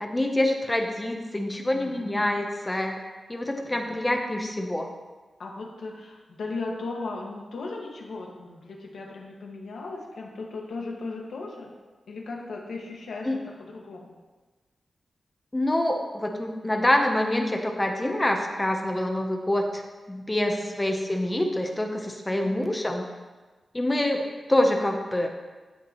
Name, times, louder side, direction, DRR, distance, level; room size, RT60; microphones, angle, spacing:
voice 1, 0.0-3.0 3.3-4.9 13.2-13.4 15.5-19.8 20.1-23.0 23.7-25.3, left 1 dB, 15° left, 3 dB, 0.7 m, -26 dB
voice 2, 1.7-2.2 3.7-3.9 5.4-11.7 12.1-14.1 20.7-20.9 22.3-22.6, left 3 dB, 85° left, -1 dB, 1.6 m, -37 dB
16.0 x 5.8 x 3.0 m, 1.3 s
wide cardioid pair, 175°, 0 cm